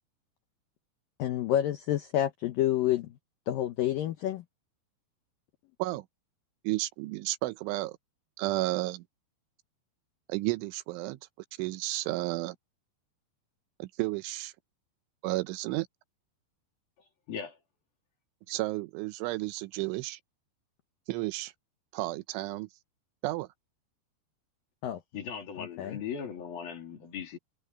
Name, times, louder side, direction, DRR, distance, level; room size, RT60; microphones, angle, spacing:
voice 1, 1.2-3.1 3.5-4.4 24.8-25.0 25.6-26.0, left 12 dB, 85° left, 2.0 m, -29 dB
voice 2, 6.6-8.0 8.4-9.0 10.3-11.2 11.6-12.6 13.8-14.5 15.2-15.9 18.5-20.2 21.1-21.5 21.9-22.7 23.2-23.5, right 19 dB, 85° right, 3.3 m, -32 dB
voice 3, 17.3-17.6 25.1-27.4, left 7 dB, 50° left, 5.3 m, -38 dB
omnidirectional pair, 5.4 m